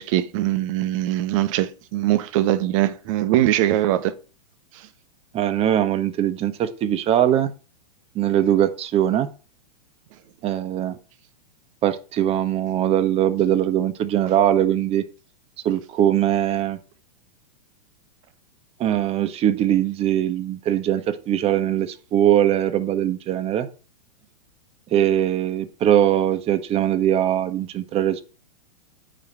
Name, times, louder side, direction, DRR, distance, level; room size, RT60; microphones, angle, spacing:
voice 1, 0.0-4.1 4.7-4.9, right 14 dB, 50° right, 1.3 m, -22 dB
voice 2, 5.3-7.5 8.1-9.3 10.4-11.0 11.8-15.0 15.6-16.8 18.8-23.7 24.9-28.2, right 11 dB, 30° right, 1.3 m, -21 dB
9.2 x 5.0 x 7.4 m
hypercardioid pair, 125°, 21 cm